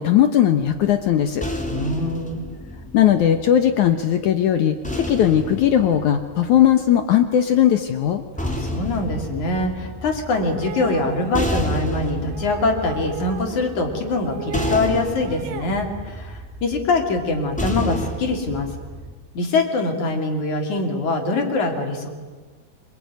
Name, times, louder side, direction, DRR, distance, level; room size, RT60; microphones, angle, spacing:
voice 1, 0.0-1.4 2.9-8.2, left 10 dB, 70° left, 8 dB, 1.8 m, -18 dB
sound 1, 0.7-3.9 4.8-7.1 8.1-19.1, equal, ahead, 2.0 m, -31 dB
voice 2, 1.7-2.4 8.4-18.7 19.3-22.1, left 2 dB, 45° left, 3 dB, 4.1 m, -23 dB
sound 2, 10.3-11.3 12.3-13.7 14.0-14.9 15.2-15.8, right 10 dB, 60° right, 2.7 m, -35 dB
26.0 x 23.0 x 9.4 m, 1.4 s
omnidirectional pair, 4.9 m